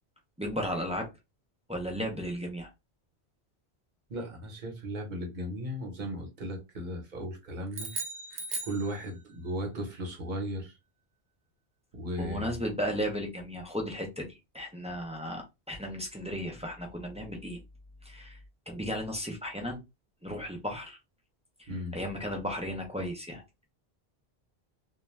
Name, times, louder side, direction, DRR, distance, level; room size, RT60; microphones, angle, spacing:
voice 1, 0.4-1.1 1.7-2.7 12.2-14.3 14.5-17.6 18.0-18.4 18.7-19.8 20.2-21.0 21.9-23.4, equal, 10° right, 0.4 m, -34 dB
voice 2, 4.1-7.9 8.6-10.7 11.9-12.6 21.7-22.0, equal, 50° right, 1.0 m, -36 dB
sound 1, 7.7-9.5, right 3 dB, 65° right, 0.8 m, -38 dB
2.4 x 2.2 x 3.1 m
omnidirectional pair, 1.1 m